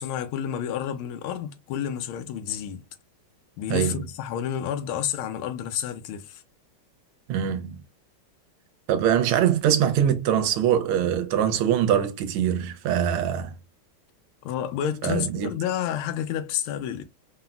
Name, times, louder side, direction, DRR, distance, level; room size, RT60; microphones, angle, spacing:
voice 1, 0.0-2.9 3.6-6.4 14.4-17.0, left 9 dB, 80° left, 1.4 m, -30 dB
voice 2, 3.7-4.0 7.3-7.7 8.9-13.5 15.0-15.5, right 9 dB, 85° right, 1.5 m, -23 dB
3.8 x 2.0 x 2.2 m
omnidirectional pair, 2.4 m